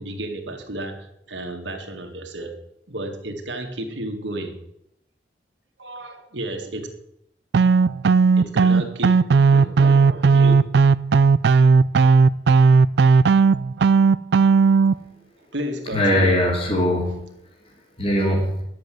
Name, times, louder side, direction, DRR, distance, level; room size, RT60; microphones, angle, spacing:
voice 1, 0.0-2.6 2.9-4.6 5.8-6.9 8.4-10.5 15.5-16.4, right 1 dB, 85° right, 4 dB, 2.1 m, -32 dB
sound 1, 7.5-14.9, right 5 dB, 65° right, 0.4 m, -15 dB
voice 2, 15.9-17.3 18.0-18.6, left 1 dB, 30° left, 0 dB, 2.8 m, -20 dB
10.5 x 7.7 x 7.5 m, 0.77 s
head